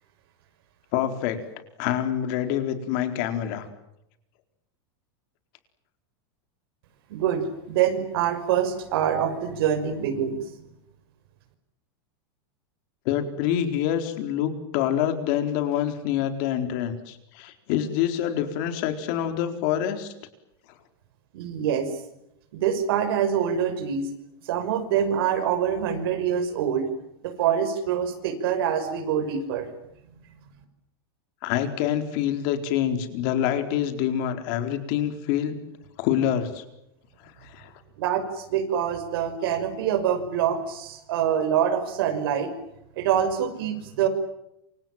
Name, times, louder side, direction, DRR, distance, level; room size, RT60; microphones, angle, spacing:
voice 1, 0.9-1.4 1.8-3.7 13.0-20.1 31.4-35.6 36.0-36.6 37.4-37.7, left 10 dB, 45° left, 7 dB, 4.4 m, -26 dB
voice 2, 7.1-10.5 21.3-21.9 22.5-24.1 24.4-26.9 27.2-29.7 38.0-42.5 43.0-44.1, right 8 dB, 65° right, 8 dB, 5.8 m, -25 dB
28.0 x 26.5 x 7.4 m, 0.83 s
supercardioid pair, 165°, 13 cm